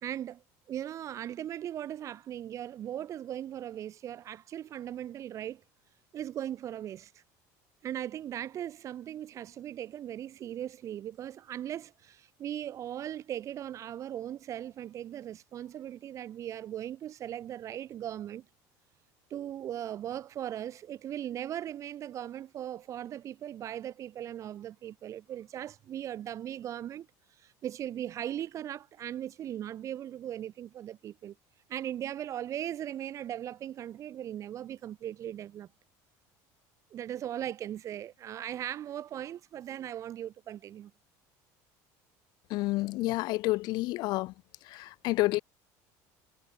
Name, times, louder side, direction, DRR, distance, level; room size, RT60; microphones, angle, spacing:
voice 1, 0.0-5.6 6.1-7.2 7.8-18.4 19.3-27.1 27.4-31.4 31.7-35.7 36.9-40.9, right 11 dB, 40° right, 5.1 m, -38 dB
voice 2, 42.5-44.3 44.6-45.4, left 20 dB, 60° left, 1.9 m, -29 dB
cardioid pair, 140°, 8 cm